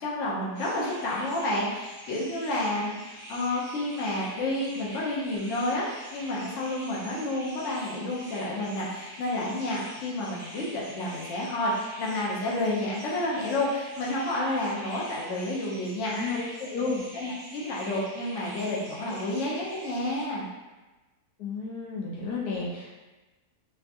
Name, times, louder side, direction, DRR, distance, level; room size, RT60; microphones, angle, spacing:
voice 1, 0.0-3.0 3.3-16.3 17.1-20.5, left 1 dB, 55° left, -5 dB, 1.1 m, -30 dB
sound 1, 0.5-20.2, equal, 20° left, 1.3 m, -45 dB
voice 2, 16.1-16.4 16.7-17.1 21.4-22.9, left 4 dB, 75° left, -4 dB, 1.2 m, -31 dB
4.4 x 2.8 x 2.6 m, 1.2 s
omnidirectional pair, 1.7 m